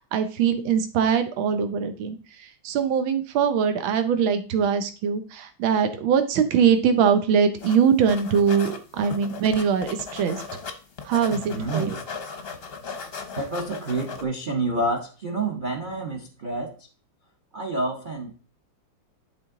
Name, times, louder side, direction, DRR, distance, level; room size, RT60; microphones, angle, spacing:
voice 1, 0.1-10.4 11.0-12.0, right 7 dB, 80° right, 8 dB, 1.7 m, -22 dB
sound 1, 7.6-7.8 8.1-10.7 11.0-14.2, left 5 dB, 45° left, 0.8 m, -37 dB
voice 2, 11.3-12.0 13.4-16.9 17.5-18.3, right 2 dB, 40° right, 3 dB, 0.7 m, -28 dB
11.5 x 4.1 x 3.7 m, 0.36 s
omnidirectional pair, 2.2 m